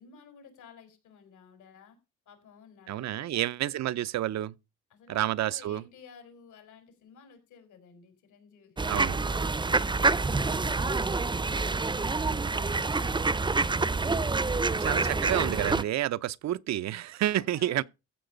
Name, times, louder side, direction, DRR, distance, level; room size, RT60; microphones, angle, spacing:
voice 1, 0.0-2.0 2.3-3.8 4.9-9.4 9.9-13.4 14.4-15.3 17.2-17.8, left 6 dB, 80° left, 5.3 m, -54 dB
voice 2, 2.9-4.5 5.1-5.8 8.9-9.2 14.8-17.8, right 13 dB, 65° right, 0.6 m, -29 dB
sound 1, 8.8-15.8, right 3 dB, 15° right, 0.7 m, -27 dB
15.0 x 7.0 x 5.2 m
cardioid pair, 90°, 30 cm